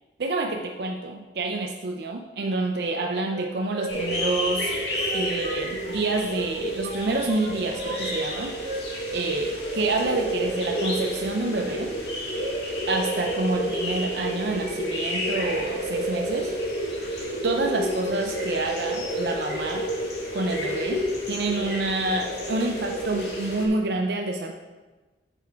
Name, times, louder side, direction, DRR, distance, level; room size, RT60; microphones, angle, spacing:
voice 1, 0.2-4.8 5.1-12.0 12.9-16.5 17.4-19.9 20.3-24.5, right 2 dB, 60° right, 3 dB, 0.5 m, -28 dB
Wind instrument woodwind instrument, 2.9-6.1 6.3-7.9 8.2-9.3 9.5-9.8, right 3 dB, 85° right, 1.8 m, -39 dB
sound 1, 3.9-23.7, equal, 65° left, 2.0 m, -30 dB
8.8 x 7.0 x 3.5 m, 1.2 s
head